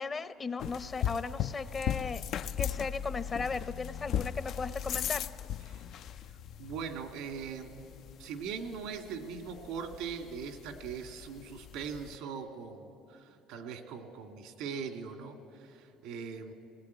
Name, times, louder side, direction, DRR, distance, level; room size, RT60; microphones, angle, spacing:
voice 1, 0.0-2.2 2.6-5.3, left 4 dB, 30° left, 12 dB, 0.8 m, -36 dB
sound 1, 0.6-12.2, left 10 dB, 60° left, 0.4 m, -38 dB
voice 2, 6.6-7.7 8.2-16.5, right 6 dB, 85° right, 5 dB, 2.0 m, -41 dB
20.0 x 18.0 x 9.4 m, 2.6 s
cardioid pair, 115°, 0 cm